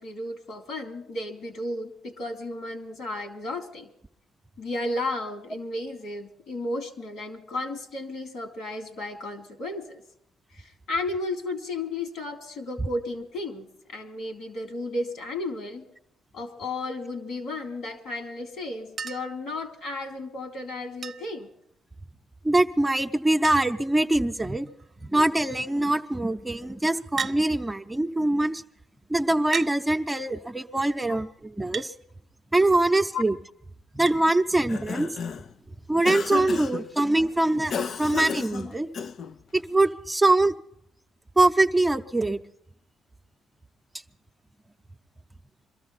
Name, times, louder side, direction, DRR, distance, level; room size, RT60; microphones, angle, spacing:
voice 1, 0.0-3.9 4.6-10.0 10.5-15.8 16.3-21.5 31.1-31.2 33.1-33.2, left 2 dB, 75° left, 5 dB, 3.3 m, -33 dB
Chink clink, 19.0-19.4 21.0-21.4 22.8-22.9 23.1-23.2 23.4-23.9 24.7-25.0 27.2-27.4 28.5-28.6 29.5-29.8 31.7-31.9 34.1-34.2 35.6-35.7, right 6 dB, 40° right, 0.7 m, -34 dB
voice 2, 22.4-24.7 25.0-28.6 29.1-31.9 32.5-33.4 33.9-35.1 35.9-38.9 39.5-40.5 41.4-42.4, right 2 dB, 10° right, 5 dB, 0.8 m, -23 dB
Cough, 34.5-35.5 36.1-36.9 37.7-39.4, left 6 dB, 60° left, 0.6 m, -33 dB
23.0 x 13.5 x 4.2 m, 0.71 s
cardioid pair, 90°, 0 cm